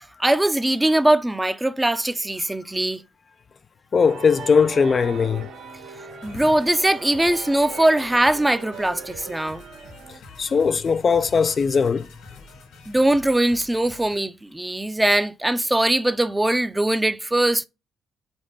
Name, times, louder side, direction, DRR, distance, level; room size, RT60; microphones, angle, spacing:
voice 1, 0.2-3.0 6.2-9.6 12.9-17.6, right 1 dB, 10° right, 0.6 m, -21 dB
voice 2, 3.9-5.5 10.1-12.1, left 5 dB, 40° left, 0.4 m, -20 dB
sound 1, 4.0-10.2, right 5 dB, 85° right, 1.7 m, -39 dB
sound 2, 6.2-14.2, left 3 dB, 85° left, 2.9 m, -47 dB
5.3 x 4.0 x 5.3 m
cardioid pair, 90°, 0 cm